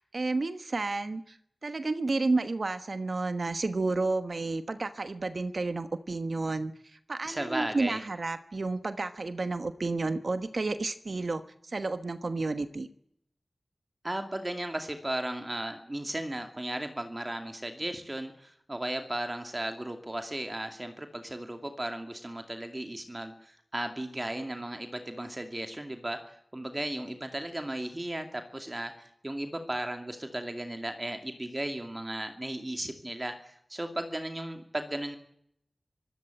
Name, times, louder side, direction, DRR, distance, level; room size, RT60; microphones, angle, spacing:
voice 1, 0.0-1.4 1.6-12.9, right 3 dB, 55° right, 10 dB, 1.2 m, -31 dB
voice 2, 7.3-8.0 14.0-35.2, right 1 dB, 25° right, 6 dB, 2.5 m, -35 dB
25.5 x 17.0 x 9.1 m, 0.71 s
wide cardioid pair, 85°, 0 cm